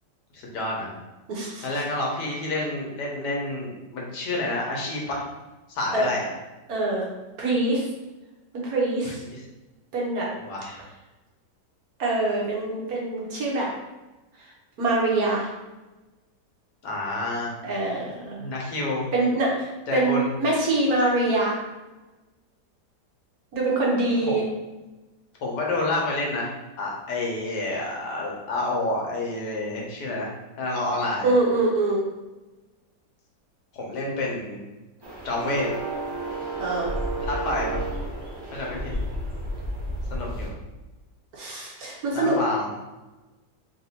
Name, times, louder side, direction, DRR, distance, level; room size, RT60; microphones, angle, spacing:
voice 1, 0.3-0.9 1.6-5.2 5.7-6.3 9.0-9.4 10.4-10.8 16.8-17.5 18.4-19.0 19.9-20.3 24.3-24.4 25.4-30.3 30.6-31.3 33.7-34.6 35.2-35.7 37.2-37.8 38.5-38.9 40.1-40.5 42.1-42.7, left 2 dB, 70° left, -2 dB, 1.5 m, -29 dB
voice 2, 1.3-1.7 5.9-6.1 6.7-7.1 7.4-7.9 8.6-9.2 9.9-10.3 12.0-13.7 14.8-15.5 17.6-18.4 19.1-21.6 23.5-24.4 31.2-32.0 36.6-36.9 41.3-42.4, right 2 dB, 60° right, -3 dB, 1.2 m, -24 dB
sound 1, 35.0-40.5, right 1 dB, 40° right, 0.3 m, -31 dB
3.5 x 2.6 x 4.2 m, 1.1 s
omnidirectional pair, 1.9 m